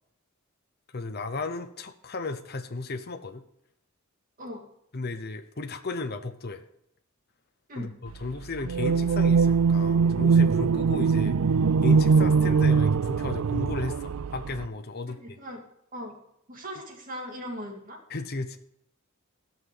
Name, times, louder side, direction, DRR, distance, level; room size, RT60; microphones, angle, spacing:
voice 1, 0.9-3.4 4.9-6.6 7.8-11.4 11.8-15.4 18.1-18.6, left 3 dB, 50° left, 6 dB, 0.9 m, -34 dB
sound 1, 8.7-14.7, right 5 dB, 90° right, 0.4 m, -22 dB
voice 2, 15.1-15.6 15.9-16.2 16.5-18.0, equal, 40° right, 2 dB, 2.2 m, -39 dB
16.0 x 6.0 x 7.5 m, 0.75 s
head